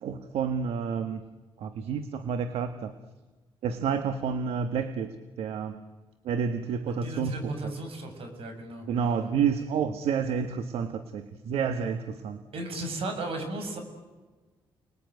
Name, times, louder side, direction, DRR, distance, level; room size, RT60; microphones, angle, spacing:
voice 1, 0.0-1.2 1.6-2.9 3.6-5.8 6.2-7.7 8.9-12.4, right 6 dB, 90° right, 9 dB, 1.5 m, -29 dB
voice 2, 6.9-8.9 12.5-13.8, right 2 dB, 70° right, 6 dB, 7.1 m, -35 dB
30.0 x 21.0 x 9.4 m, 1.3 s
cardioid pair, 100°, 10 cm